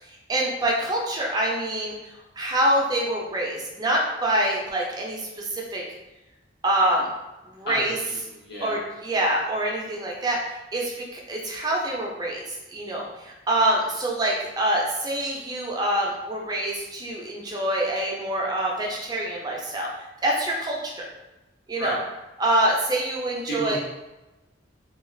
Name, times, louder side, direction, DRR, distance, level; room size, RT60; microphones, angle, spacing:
voice 1, 0.0-5.8 6.6-7.1 7.5-8.0 8.6-20.9 21.7-22.0 22.4-23.8, right 1 dB, 20° right, -2 dB, 0.4 m, -26 dB
voice 2, 8.1-8.8 21.8-22.0 23.5-23.8, equal, 55° left, -5 dB, 0.9 m, -31 dB
2.4 x 2.3 x 3.1 m, 1.0 s
head